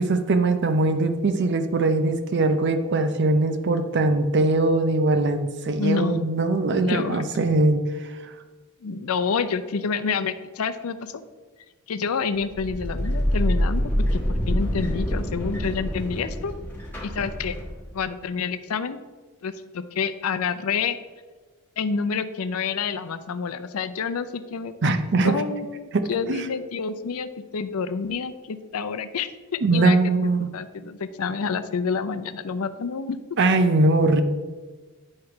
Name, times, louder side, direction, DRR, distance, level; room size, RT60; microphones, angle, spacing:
voice 1, 0.0-8.1 24.8-25.4 25.9-26.0 26.3-26.5 29.6-30.5 33.4-34.2, right 2 dB, 55° right, 9 dB, 0.5 m, -21 dB
voice 2, 5.8-6.2 6.7-7.2 8.8-11.2 11.9-16.5 17.0-17.6 17.9-19.0 19.4-21.0 21.8-25.0 25.2-30.0 30.5-33.2, left 5 dB, 80° left, 12 dB, 0.5 m, -28 dB
sound 1, 12.4-18.0, equal, 10° left, 1.3 m, -26 dB
9.6 x 3.2 x 5.8 m, 1.3 s
head